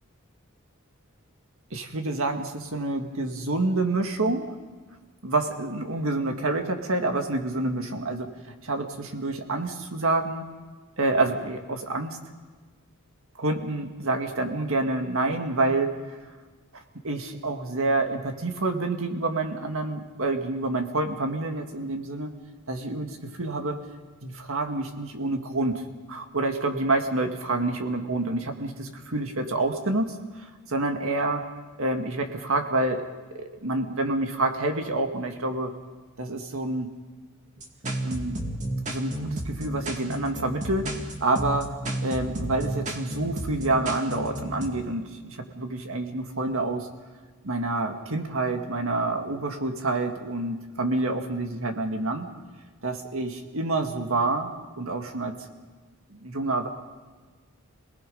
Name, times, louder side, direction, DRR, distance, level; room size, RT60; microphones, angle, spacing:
voice 1, 1.7-4.5 5.2-8.3 8.6-10.4 11.0-12.2 13.4-16.2 16.7-22.3 22.7-23.8 24.2-25.8 26.1-31.4 31.8-33.0 33.6-35.7 36.2-36.9 38.0-38.4 38.9-40.9 41.2-41.7 42.0-46.9 47.4-52.3 52.8-55.4 56.1-56.7, right 2 dB, 65° right, 5 dB, 2.0 m, -28 dB
sound 1, 37.6-44.7, right 1 dB, 35° right, 2.2 m, -32 dB
27.5 x 19.0 x 5.5 m, 1.4 s
head